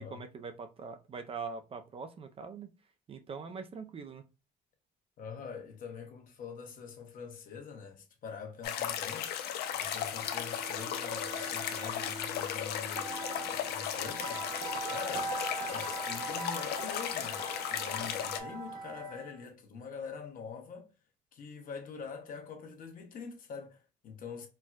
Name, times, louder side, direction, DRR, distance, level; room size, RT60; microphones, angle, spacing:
voice 1, 0.0-2.7 3.1-4.2, right 5 dB, 35° right, 0.5 m, -43 dB
voice 2, 5.2-9.3 9.7-14.5 14.9-15.4 15.6-20.9 21.3-24.5, left 6 dB, 55° left, 1.0 m, -44 dB
sound 1, 8.6-18.4, left 10 dB, 75° left, 0.5 m, -36 dB
sound 2, 9.9-19.4, right 3 dB, 80° right, 0.8 m, -42 dB
4.4 x 2.3 x 2.3 m
cardioid pair, 110°, 17 cm